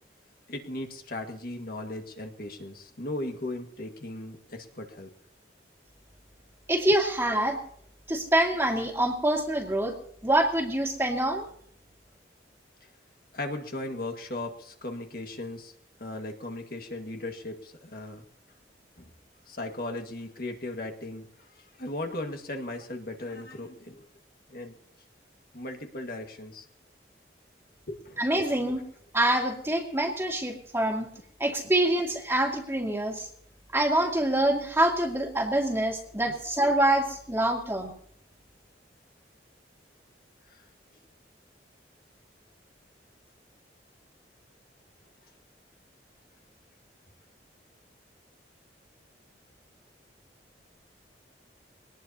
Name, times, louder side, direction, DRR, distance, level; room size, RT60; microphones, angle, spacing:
voice 1, 0.5-5.1 13.3-15.7 16.0-18.2 19.0-19.1 19.5-21.3 21.6-24.1 24.5-24.7 25.5-26.7 27.9-28.2 36.3-36.4 40.5-40.6, left 2 dB, 55° left, 3 dB, 1.8 m, -37 dB
voice 2, 6.7-7.6 8.1-9.9 10.2-11.5 28.2-28.8 29.1-31.1 31.4-33.3 33.7-37.9, right 1 dB, 15° right, 0 dB, 2.1 m, -25 dB
23.0 x 19.0 x 2.8 m, 0.62 s
head